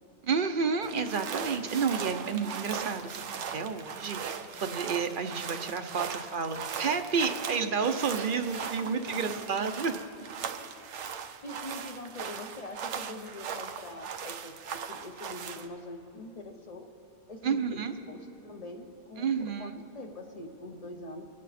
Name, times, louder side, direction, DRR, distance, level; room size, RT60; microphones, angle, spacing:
voice 1, 0.3-3.1 3.5-9.9 17.4-17.9 19.2-19.8, right 5 dB, 55° right, 8 dB, 0.8 m, -30 dB
sound 1, 0.8-15.7, right 7 dB, 85° right, 1.0 m, -39 dB
voice 2, 8.8-9.3 11.4-16.9 17.3-17.8 18.1-21.2, left 2 dB, 35° left, 5 dB, 0.9 m, -44 dB
24.0 x 8.5 x 4.2 m, 2.9 s
omnidirectional pair, 1.2 m